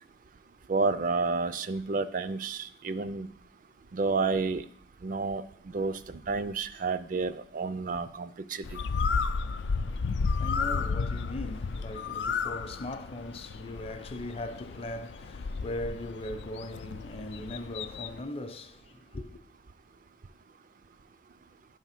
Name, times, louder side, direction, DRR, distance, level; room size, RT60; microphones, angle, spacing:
voice 1, 0.7-3.3 3.9-4.6 5.0-6.0 6.3-8.6, right 3 dB, 50° right, 0.4 m, -30 dB
Bird, 8.6-18.2, left 5 dB, 85° left, 0.4 m, -33 dB
voice 2, 10.0-19.4, left 1 dB, 35° left, 0.5 m, -39 dB
10.5 x 3.5 x 5.8 m
head